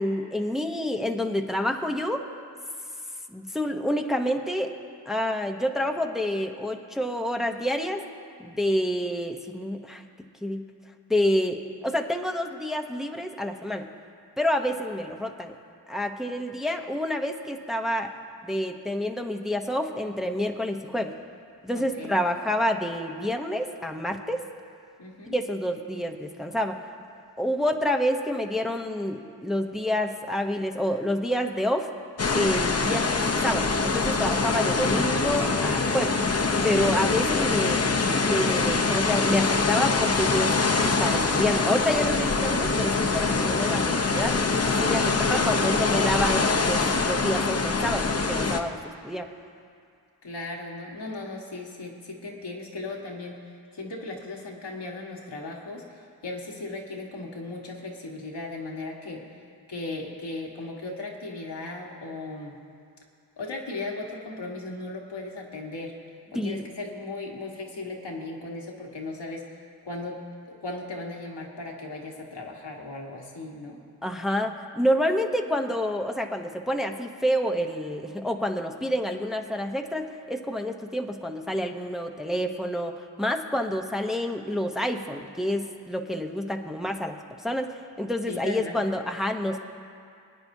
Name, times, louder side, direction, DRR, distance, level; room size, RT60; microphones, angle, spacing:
voice 1, 0.0-2.2 3.3-4.7 5.1-8.0 8.4-10.0 10.4-10.6 11.1-13.8 14.4-15.5 15.9-18.1 18.4-21.1 21.6-24.4 25.3-26.8 27.4-31.9 32.3-36.2 36.6-37.9 38.2-40.5 40.8-44.4 44.7-45.0 45.3-48.8 49.0-49.3 66.3-66.6 74.0-87.2 87.4-89.7, left 1 dB, ahead, 4 dB, 0.8 m, -28 dB
voice 2, 21.7-22.2 25.0-25.4 45.0-45.7 50.2-53.4 53.7-59.3 59.7-62.6 63.4-65.9 66.3-69.5 69.8-70.2 70.6-73.8 88.2-88.8, left 2 dB, 85° left, -1 dB, 1.6 m, -37 dB
sound 1, 32.2-48.6, left 4 dB, 40° left, 0.8 m, -24 dB
26.5 x 9.4 x 2.7 m, 2.3 s
wide cardioid pair, 55°, 41 cm